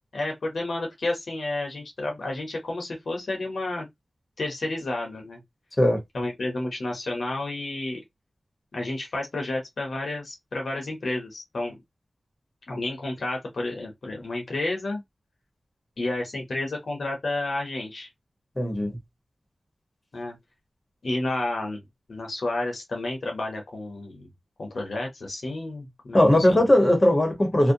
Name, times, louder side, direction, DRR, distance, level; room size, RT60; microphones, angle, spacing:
voice 1, 0.1-3.9 4.4-5.4 6.1-8.0 8.7-11.7 12.7-15.0 16.0-18.1 20.1-20.4 21.0-21.8 22.1-24.3 24.6-26.6, left 2 dB, 85° left, 0.8 m, -31 dB
voice 2, 18.6-19.0 26.1-27.7, left 1 dB, 35° left, 1.1 m, -19 dB
2.5 x 2.1 x 2.7 m
cardioid pair, 55°, 0 cm